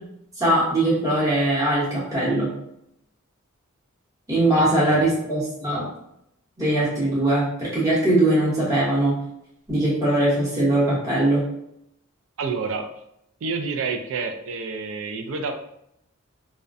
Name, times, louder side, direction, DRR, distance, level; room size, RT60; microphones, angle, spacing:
voice 1, 0.4-2.5 4.3-5.9 6.6-9.2 9.7-11.5, right 1 dB, 15° right, -9 dB, 0.8 m, -21 dB
voice 2, 12.4-12.9 13.4-15.5, right 4 dB, 65° right, 5 dB, 0.3 m, -29 dB
2.3 x 2.1 x 2.5 m, 0.76 s
head